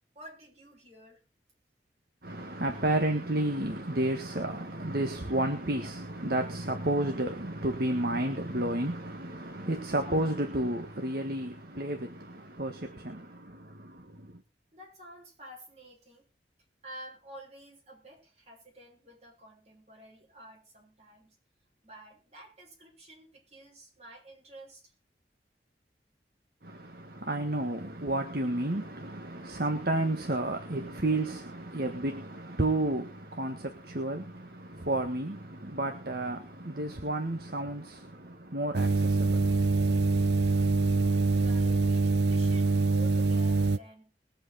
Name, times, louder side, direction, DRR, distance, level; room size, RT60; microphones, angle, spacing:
voice 1, 0.1-1.2 14.7-16.2 16.8-21.3 21.8-24.8 41.4-44.1, right 1 dB, 35° right, 6.4 m, -50 dB
voice 2, 2.2-14.4 26.6-39.9, right 1 dB, 55° right, 1.6 m, -32 dB
sound 1, 38.7-43.8, right 3 dB, 75° right, 0.6 m, -25 dB
21.5 x 8.0 x 4.2 m
head